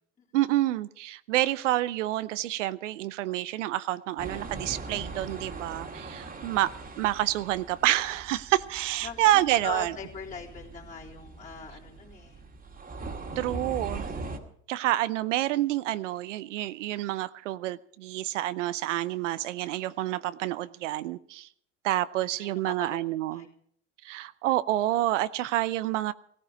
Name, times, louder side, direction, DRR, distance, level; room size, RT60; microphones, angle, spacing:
voice 1, 0.3-6.7 7.0-9.9 13.4-14.1 14.7-21.5 21.8-23.5 24.0-26.1, right 15 dB, 75° right, 15 dB, 0.7 m, -28 dB
sound 1, 4.2-14.4, right 3 dB, 20° right, 2.4 m, -41 dB
voice 2, 9.0-12.4 13.1-13.5 22.1-23.0 23.3-23.5, left 5 dB, 20° left, -3 dB, 3.8 m, -41 dB
17.0 x 14.5 x 5.1 m, 0.65 s
hypercardioid pair, 90°, 37 cm